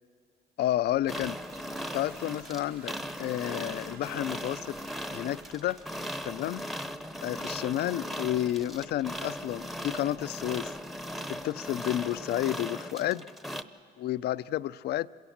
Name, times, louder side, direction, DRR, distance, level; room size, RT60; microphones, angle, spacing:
voice 1, 0.6-1.4 1.9-4.8 5.1-5.8 6.2-6.6 7.2-10.7 11.3-13.2 14.0-15.1, left 13 dB, 70° left, 0.4 m, -31 dB
Toilet flush, 0.9-12.4, right 5 dB, 65° right, 2.1 m, -56 dB
sound 1, 1.1-13.6, equal, ahead, 0.8 m, -38 dB
26.5 x 17.0 x 7.3 m
cardioid pair, 85°, 18 cm